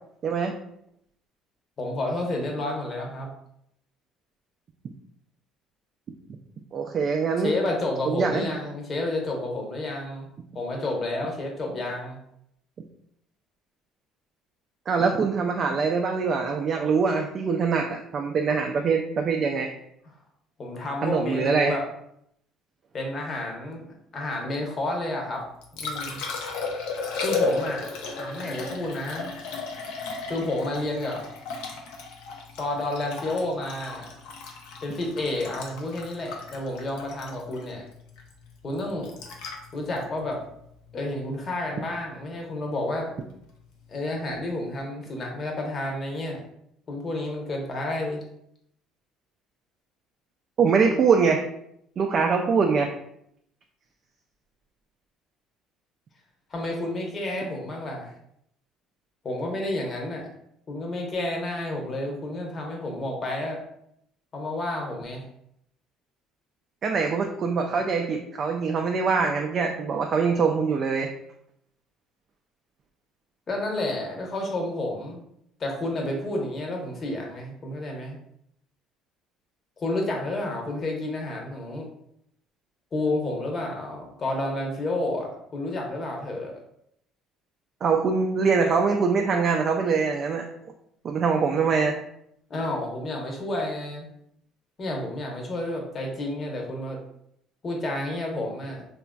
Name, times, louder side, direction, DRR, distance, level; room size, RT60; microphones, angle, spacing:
voice 1, 0.2-0.5 6.7-7.6 8.1-8.5 14.9-19.7 21.0-21.7 50.6-51.4 52.0-52.9 66.8-71.1 87.8-90.5 91.0-92.0, right 5 dB, 50° right, 2 dB, 0.3 m, -23 dB
voice 2, 1.8-3.3 7.4-12.2 20.6-21.8 22.9-25.4 25.7-26.2 27.2-27.9 28.2-29.3 30.3-31.2 32.6-34.1 34.8-37.8 38.6-39.1 39.7-40.4 40.9-43.1 43.9-46.4 46.9-48.2 56.5-58.1 59.2-60.3 60.7-63.6 64.3-65.2 73.5-75.2 75.6-78.2 79.8-81.9 82.9-86.5 92.5-94.1 94.8-97.0 97.6-98.8, left 1 dB, 40° left, 1 dB, 0.8 m, -30 dB
Liquid, 25.3-41.4 44.3-44.4, left 3 dB, 80° left, 0.5 m, -35 dB
2.9 x 2.5 x 2.2 m, 0.74 s
supercardioid pair, 75°, 0 cm